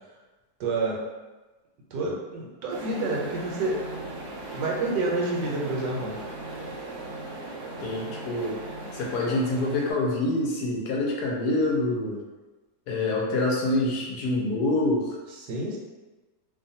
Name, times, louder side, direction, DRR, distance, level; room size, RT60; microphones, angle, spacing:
voice 1, 0.6-1.0 1.9-3.8 4.5-6.2 15.4-15.8, right 2 dB, 80° right, -2 dB, 1.2 m, -28 dB
sound 1, 2.7-9.9, right 2 dB, 65° right, 0.8 m, -38 dB
voice 2, 7.8-8.6 8.9-12.2 12.9-15.1, left 2 dB, 75° left, -2 dB, 1.1 m, -26 dB
3.0 x 2.2 x 2.6 m, 1.2 s
omnidirectional pair, 1.9 m